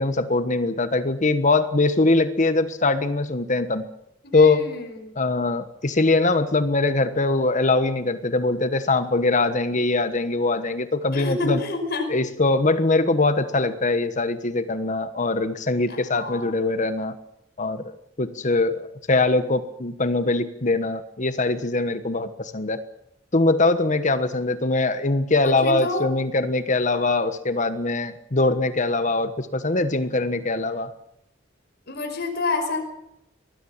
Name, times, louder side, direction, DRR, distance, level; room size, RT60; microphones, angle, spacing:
voice 1, 0.0-3.9 4.3-4.6 5.2-11.6 12.1-17.1 17.6-22.8 23.3-30.9, left 2 dB, 40° left, 11 dB, 1.3 m, -22 dB
voice 2, 4.2-5.1 11.1-12.0 16.1-16.5 25.4-26.0 31.9-32.8, left 3 dB, 55° left, 4 dB, 5.5 m, -28 dB
24.5 x 20.0 x 7.3 m, 0.81 s
head